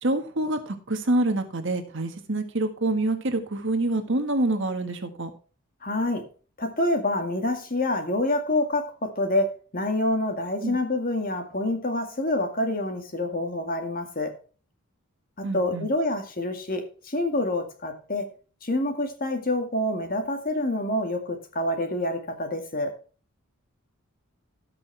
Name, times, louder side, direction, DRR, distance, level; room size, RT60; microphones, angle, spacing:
voice 1, 0.0-5.3 10.6-10.8 15.4-15.9, right 2 dB, 55° right, 7 dB, 1.6 m, -26 dB
voice 2, 5.8-6.3 6.6-14.3 15.4-18.3 18.6-23.0, left 1 dB, 40° left, 5 dB, 2.0 m, -27 dB
16.5 x 6.0 x 3.4 m, 0.37 s
head